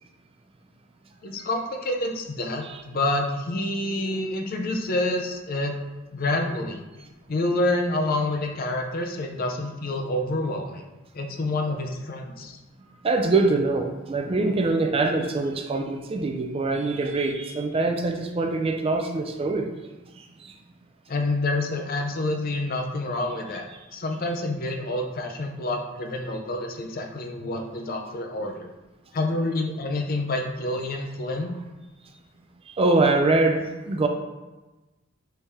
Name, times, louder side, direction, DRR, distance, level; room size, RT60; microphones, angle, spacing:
voice 1, 1.2-5.8 6.1-6.8 7.3-10.8 11.1-12.6 21.1-23.7 23.9-28.7 29.1-31.6, left 2 dB, 45° left, 4 dB, 0.5 m, -28 dB
voice 2, 13.0-19.7 20.2-20.5 32.8-34.1, right 3 dB, 30° right, 4 dB, 0.4 m, -24 dB
4.1 x 3.4 x 3.4 m, 1.1 s
head